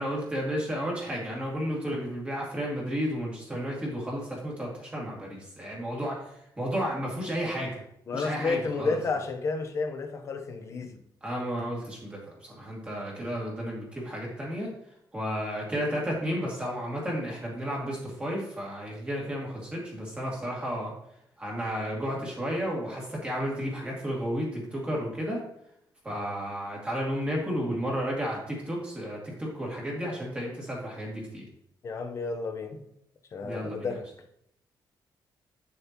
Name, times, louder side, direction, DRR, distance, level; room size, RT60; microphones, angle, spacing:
voice 1, 0.0-7.8 8.1-9.0 11.2-14.7 15.1-20.9 21.4-25.5 26.0-31.5 33.4-33.9, equal, 15° right, -3 dB, 2.1 m, -32 dB
voice 2, 8.1-11.0 31.8-32.8 33.3-34.1, left 4 dB, 35° left, 4 dB, 0.8 m, -31 dB
9.1 x 6.6 x 2.9 m, 0.74 s
wide cardioid pair, 175°, 8 cm